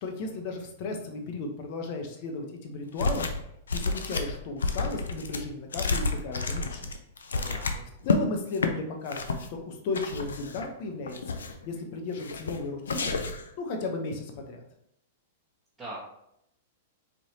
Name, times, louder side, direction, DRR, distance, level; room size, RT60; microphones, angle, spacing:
voice 1, 0.0-3.3 3.7-6.9 8.0-11.2 11.7-13.2 13.6-14.6, left 3 dB, 50° left, 3 dB, 0.8 m, -35 dB
sound 1, 3.0-3.4 3.7-8.2 8.5-8.7 9.1-9.5 9.9-10.7 11.1-11.7 12.2-12.6 12.9-13.5, left 3 dB, 90° left, 0.5 m, -30 dB
voice 2, 7.3-7.9 15.8-16.0, right 2 dB, 10° right, -10 dB, 1.3 m, -41 dB
4.3 x 3.2 x 2.8 m, 0.76 s
hypercardioid pair, 125°, 0 cm